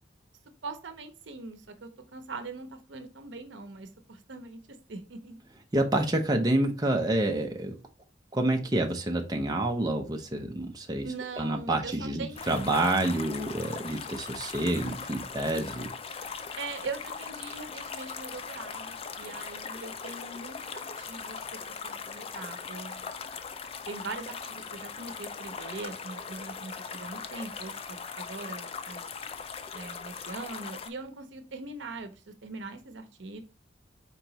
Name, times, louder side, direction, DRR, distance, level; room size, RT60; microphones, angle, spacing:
voice 1, 0.6-4.6 4.9-5.4 11.0-12.5 16.6-23.1 23.9-29.0 29.7-33.4, right 3 dB, 75° right, 8 dB, 0.7 m, -41 dB
voice 2, 5.7-7.7 8.3-11.1 11.4-15.9, right 1 dB, 20° right, 3 dB, 0.5 m, -28 dB
sound 1, 12.4-30.9, left 5 dB, 30° left, 0.3 m, -40 dB
4.5 x 3.0 x 3.9 m, 0.32 s
head